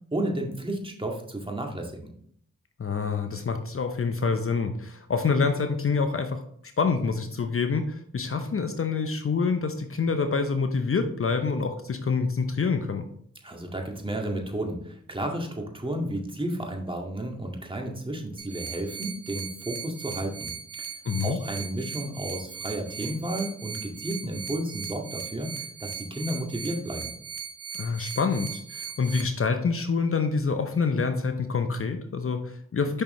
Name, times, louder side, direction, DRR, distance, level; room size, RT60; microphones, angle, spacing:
voice 1, 0.1-2.1 13.4-20.5 21.2-25.5 25.8-27.1, right 1 dB, 15° right, 1 dB, 2.0 m, -32 dB
voice 2, 2.8-6.4 6.8-13.1 21.0-21.4 27.8-33.0, left 4 dB, 45° left, 7 dB, 0.8 m, -26 dB
sound 1, 18.4-29.2, right 6 dB, 50° right, 1.2 m, -38 dB
6.7 x 5.7 x 3.2 m, 0.65 s
supercardioid pair, 40°, 30 cm